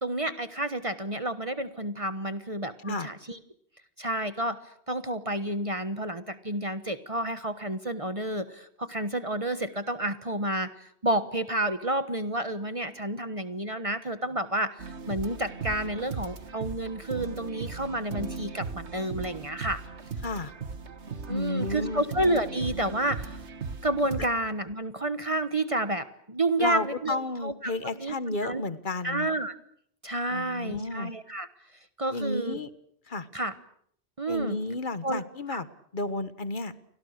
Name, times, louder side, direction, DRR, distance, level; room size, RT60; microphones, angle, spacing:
voice 1, 0.0-3.4 4.0-19.8 21.3-23.4 23.8-28.2 28.4-28.6 29.0-29.5 30.0-31.5 32.0-32.6 33.3-33.5 34.2-34.6 35.0-35.6, right 1 dB, 30° right, 11 dB, 1.3 m, -30 dB
sound 1, 14.8-24.3, right 5 dB, 90° right, 1.9 m, -38 dB
voice 2, 21.3-22.0 26.6-29.3 30.3-31.1 32.1-32.7 33.1-33.3 34.3-35.7 35.9-36.7, left 2 dB, 50° left, 13 dB, 1.5 m, -32 dB
30.0 x 24.5 x 6.6 m, 0.68 s
omnidirectional pair, 1.1 m